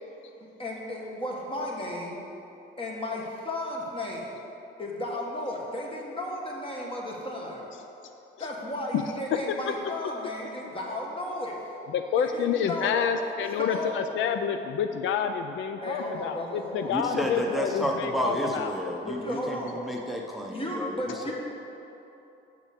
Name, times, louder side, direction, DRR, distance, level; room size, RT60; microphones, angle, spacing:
voice 1, 0.6-2.2 2.8-4.3 4.8-7.7 8.4-11.6 12.2-12.9 13.6-14.0 15.8-18.5 19.1-19.8 20.4-21.3, left 1 dB, 25° left, -1 dB, 1.7 m, -34 dB
voice 2, 11.9-18.7 21.1-21.2, left 8 dB, 75° left, 7 dB, 0.4 m, -28 dB
voice 3, 16.9-21.0 21.2-21.3, equal, ahead, 0 dB, 0.7 m, -31 dB
6.8 x 6.1 x 6.7 m, 2.9 s
cardioid pair, 90°, 20 cm